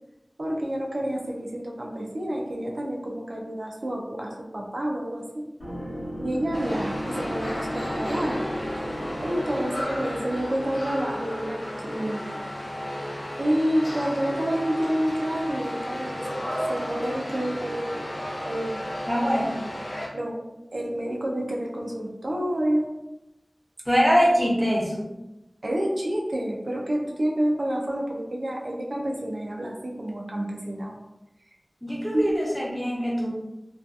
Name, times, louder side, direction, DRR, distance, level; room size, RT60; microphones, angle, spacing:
voice 1, 0.4-5.4 6.2-8.4 9.2-12.4 13.4-16.4 16.7-18.1 18.4-18.9 20.1-20.4 20.7-22.9 25.6-31.0 32.1-32.3, right 1 dB, 65° right, -1 dB, 0.5 m, -28 dB
sound 1, 5.6-11.3, equal, 85° left, 1.0 m, -35 dB
sound 2, 6.5-20.1, equal, 60° left, 0.6 m, -33 dB
voice 2, 19.1-19.6 23.9-25.1 31.8-33.3, equal, ahead, -5 dB, 0.8 m, -23 dB
2.6 x 2.3 x 2.3 m, 0.96 s
wide cardioid pair, 55°, 0 cm